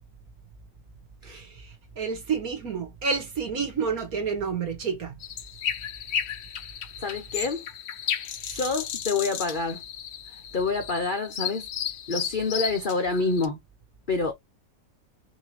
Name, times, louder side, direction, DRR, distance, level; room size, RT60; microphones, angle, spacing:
voice 1, 1.2-5.2, right 5 dB, 50° right, 2.1 m, -30 dB
sound 1, 5.2-13.5, left 9 dB, 90° left, 0.5 m, -34 dB
voice 2, 7.0-7.6 8.1-9.8 10.3-11.7 12.1-13.6 14.1-14.3, left 3 dB, 50° left, 0.6 m, -28 dB
5.4 x 3.2 x 3.0 m
omnidirectional pair, 2.0 m